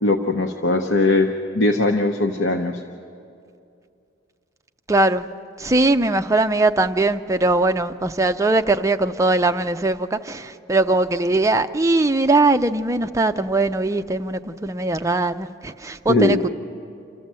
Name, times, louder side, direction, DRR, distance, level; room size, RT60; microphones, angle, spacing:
voice 1, 0.0-2.8 16.1-16.4, left 2 dB, 85° left, 0.9 m, -20 dB
voice 2, 4.9-5.3 5.6-16.5, right 2 dB, 15° right, 0.5 m, -20 dB
27.0 x 14.0 x 7.5 m
head